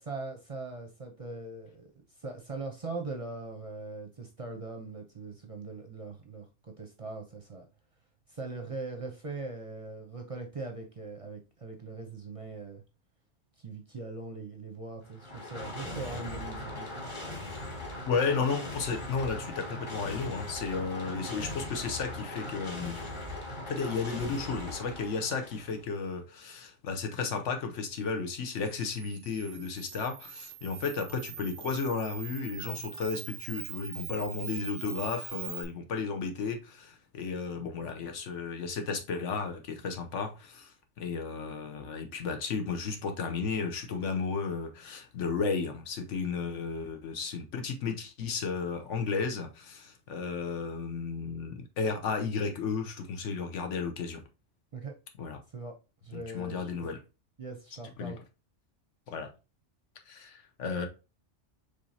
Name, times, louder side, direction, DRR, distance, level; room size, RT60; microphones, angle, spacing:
voice 1, 0.0-1.9 2.2-7.6 8.3-12.8 13.6-16.9 54.7-54.9 55.5-55.7 56.0-56.9 57.4-58.2, right 3 dB, 40° right, 0.6 m, -41 dB
sound 1, 15.0-25.9, left 2 dB, 25° left, 1.1 m, -40 dB
voice 2, 18.1-23.0 23.7-54.2 55.2-55.4 56.1-57.0 58.0-58.1 59.1-59.3 60.1-60.9, left 5 dB, 80° left, 1.2 m, -33 dB
Camera, 28.7-35.7, right 11 dB, 90° right, 0.9 m, -43 dB
5.0 x 3.3 x 2.7 m
omnidirectional pair, 1.2 m